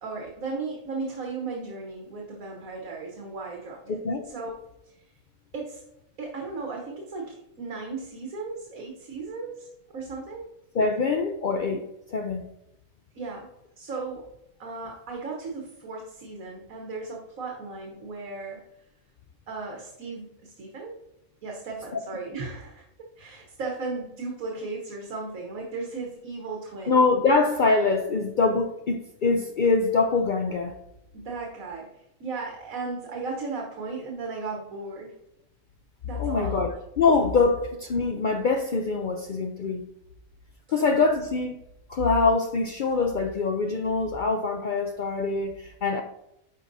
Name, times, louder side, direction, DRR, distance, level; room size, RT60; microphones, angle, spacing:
voice 1, 0.0-4.0 4.2-4.5 5.5-5.8 6.2-10.5 13.1-13.5 13.8-14.2 14.6-18.6 19.5-21.0 21.4-27.0 31.1-35.1 36.0-36.6, right 3 dB, 75° right, -1 dB, 1.5 m, -36 dB
voice 2, 3.9-4.2 10.7-11.8 12.1-12.4 21.9-22.0 26.9-30.7 36.2-39.8 40.7-41.6 41.9-46.0, left 4 dB, 75° left, 3 dB, 0.4 m, -24 dB
9.9 x 4.7 x 2.6 m, 0.82 s
omnidirectional pair, 1.5 m